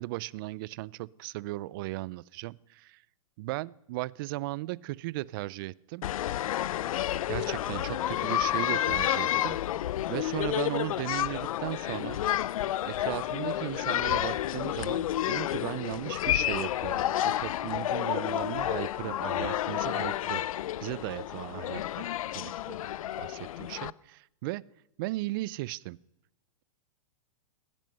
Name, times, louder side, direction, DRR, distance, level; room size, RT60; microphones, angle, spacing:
voice 1, 0.0-3.0 3.4-6.1 7.3-9.6 10.1-12.2 12.8-22.1 22.3-22.8 23.2-24.6 25.0-26.0, right 19 dB, 40° right, 24 dB, 0.4 m, -36 dB
sound 1, 6.0-23.9, left 12 dB, 75° left, 0.4 m, -30 dB
16.5 x 10.5 x 5.3 m, 0.88 s
hypercardioid pair, 140°, 18 cm